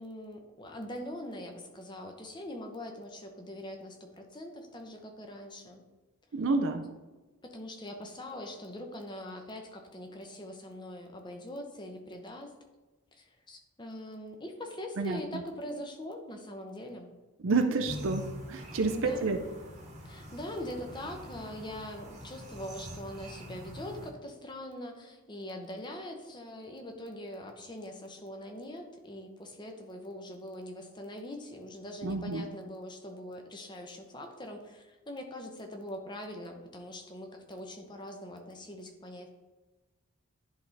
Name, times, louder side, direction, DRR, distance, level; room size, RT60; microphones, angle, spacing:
voice 1, 0.0-5.8 7.4-12.5 13.1-17.1 18.6-19.4 20.0-39.3, left 1 dB, 20° left, 3 dB, 0.8 m, -42 dB
voice 2, 6.3-6.8 15.0-15.2 17.4-19.4 32.0-32.5, right 3 dB, 60° right, 6 dB, 0.5 m, -29 dB
sound 1, 17.9-24.1, equal, 30° right, 1.2 m, -44 dB
10.5 x 3.6 x 4.0 m, 1.2 s
head